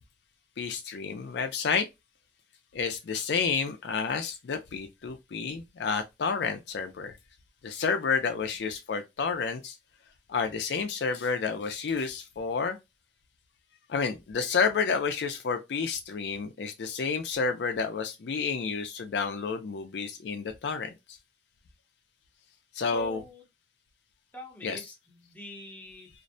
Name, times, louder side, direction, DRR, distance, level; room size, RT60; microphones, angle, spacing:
voice 1, 0.6-1.9 2.7-7.1 7.6-9.8 10.3-12.8 13.9-20.9 22.7-23.2 24.6-24.8, left 5 dB, 70° left, 0.4 m, -30 dB
voice 2, 22.9-23.4 24.3-26.1, left 3 dB, 10° left, 0.8 m, -44 dB
2.5 x 2.1 x 2.5 m
head